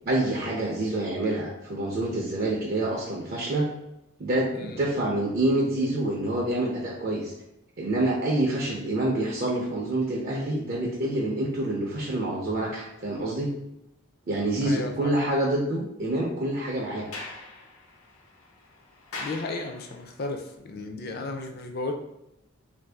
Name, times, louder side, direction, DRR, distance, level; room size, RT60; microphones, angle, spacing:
voice 1, 0.1-3.7 4.2-7.3 7.8-13.5 14.3-17.1, right 1 dB, 45° right, -2 dB, 0.5 m, -27 dB
voice 2, 4.5-4.8 14.6-15.1 19.2-21.9, left 2 dB, 45° left, 4 dB, 0.4 m, -34 dB
Sliding door, 16.9-20.2, left 3 dB, 80° left, 0.7 m, -42 dB
3.0 x 2.6 x 3.3 m, 0.89 s
head